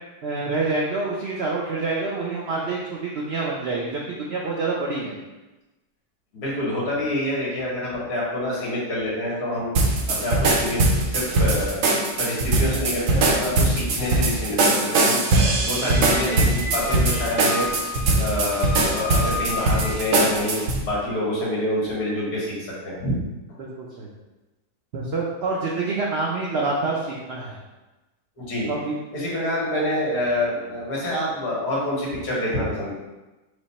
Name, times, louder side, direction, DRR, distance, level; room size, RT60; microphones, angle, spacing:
voice 1, 0.2-5.2 23.6-24.1 24.9-27.6 28.7-28.9, right 3 dB, 85° right, -3 dB, 0.5 m, -27 dB
voice 2, 6.3-9.7 10.1-11.8 12.2-15.2 15.6-17.7 18.1-23.1 28.4-28.7 29.1-32.9, left 1 dB, 70° left, -5 dB, 1.9 m, -27 dB
sound 1, 9.7-20.8, right 2 dB, 65° right, 0.9 m, -21 dB
Squeak, 15.8-20.3, left 3 dB, 45° left, 1.5 m, -33 dB
4.9 x 2.1 x 4.1 m, 1.1 s
omnidirectional pair, 1.8 m